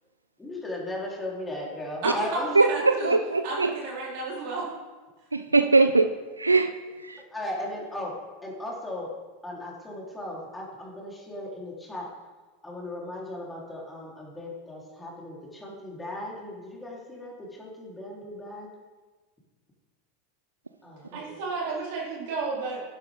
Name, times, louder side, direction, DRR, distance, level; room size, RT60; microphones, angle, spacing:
voice 1, 0.4-2.5 7.3-8.2 8.4-9.1 9.4-12.1 12.6-18.7 20.8-21.4, left 1 dB, 10° left, -4 dB, 3.8 m, -37 dB
voice 2, 2.0-3.2 3.4-4.7 21.1-22.8, right 3 dB, 55° right, -4 dB, 3.9 m, -32 dB
voice 3, 2.6-3.7 5.3-6.1 6.4-6.7 7.1-7.2, right 3 dB, 85° right, 9 dB, 0.4 m, -21 dB
11.0 x 10.5 x 3.7 m, 1.3 s
figure-of-eight pair, 85°, 0 cm